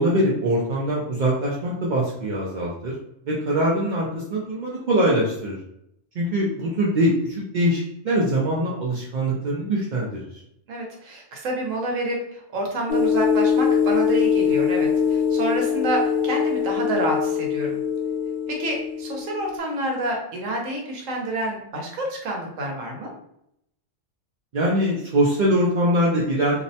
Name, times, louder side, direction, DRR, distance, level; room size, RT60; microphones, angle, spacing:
voice 1, 0.0-2.9 3.3-5.6 6.2-10.2 24.5-26.6, right 1 dB, 65° right, -5 dB, 0.4 m, -23 dB
voice 2, 10.7-17.8 18.5-23.1, right 1 dB, 80° right, 0 dB, 1.1 m, -28 dB
sound 1, 12.9-19.6, left 7 dB, 50° left, 0.5 m, -22 dB
2.7 x 2.1 x 2.7 m, 0.77 s
omnidirectional pair, 1.3 m